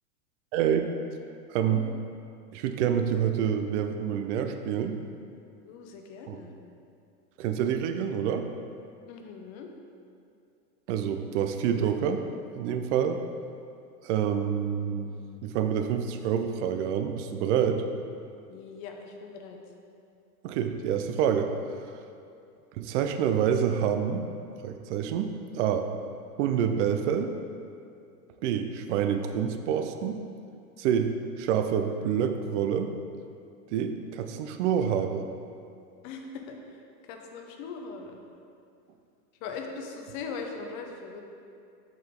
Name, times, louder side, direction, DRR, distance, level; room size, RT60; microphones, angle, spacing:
voice 1, 0.5-0.9 1.5-1.8 2.5-5.0 6.3-6.4 7.4-8.5 10.9-12.2 12.5-13.2 14.0-15.1 15.4-17.8 20.4-21.5 22.8-24.3 24.6-25.9 26.4-27.3 28.4-30.2 30.8-32.9 33.7-35.2, right 8 dB, 45° right, 7 dB, 0.6 m, -27 dB
voice 2, 1.6-2.0 5.6-6.5 9.1-9.7 18.5-19.6 36.0-38.2 39.4-41.2, left 4 dB, 40° left, 3 dB, 0.9 m, -40 dB
7.5 x 5.1 x 3.6 m, 2.5 s
hypercardioid pair, 125°, 50 cm